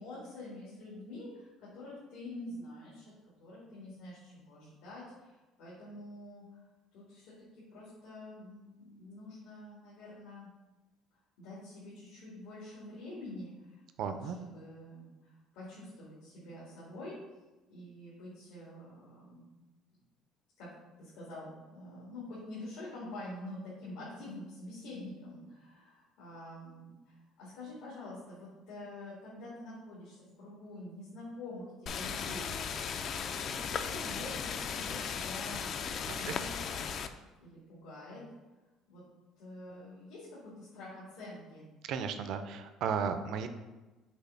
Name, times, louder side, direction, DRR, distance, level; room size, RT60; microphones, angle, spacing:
voice 1, 0.0-3.1 3.4-6.6 6.9-10.5 11.4-17.2 17.7-19.5 20.6-20.7 21.0-32.5 33.3-35.7 36.2-36.9 37.4-38.2 38.9-39.0 39.4-41.6, left 1 dB, 90° left, -8 dB, 2.2 m, -47 dB
voice 2, 14.0-14.4 36.1-36.3 41.9-43.5, right 6 dB, 60° right, 8 dB, 0.5 m, -34 dB
sound 1, 31.9-37.1, left 6 dB, 40° left, 0.4 m, -36 dB
6.2 x 3.3 x 5.6 m, 1.1 s
cardioid pair, 150°, 0 cm